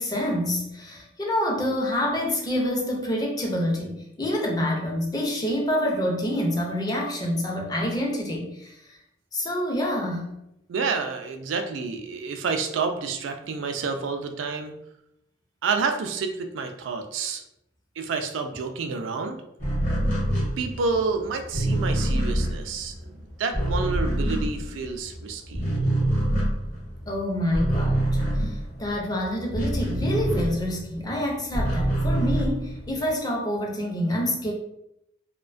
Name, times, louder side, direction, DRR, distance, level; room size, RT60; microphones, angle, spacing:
voice 1, 0.0-9.0 9.3-10.3 27.1-34.5, left 1 dB, 20° left, -1 dB, 0.4 m, -27 dB
voice 2, 10.7-14.7 15.6-17.4 18.0-19.4 20.6-25.6, right 4 dB, 85° right, 5 dB, 0.3 m, -29 dB
sound 1, 19.6-25.2 25.5-30.9 31.3-33.1, right 1 dB, 40° left, 0.8 m, -26 dB
2.4 x 2.2 x 2.4 m, 0.81 s
head